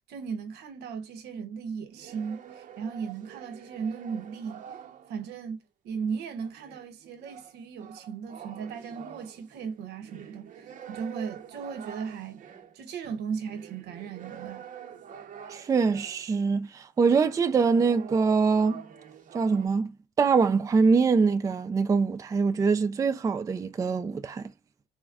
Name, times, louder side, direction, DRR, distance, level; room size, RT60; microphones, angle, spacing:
voice 1, 0.1-4.6 5.1-5.6 5.8-12.5 12.7-14.6, right 6 dB, 80° right, 1.0 m, -36 dB
sound 1, 1.9-5.4 6.4-16.3 17.0-19.7, right 8 dB, 50° right, 0.7 m, -46 dB
voice 2, 15.5-18.8 19.3-19.9 20.2-24.5, right 5 dB, 20° right, 0.3 m, -24 dB
4.1 x 2.1 x 2.3 m
cardioid pair, 110°, 17 cm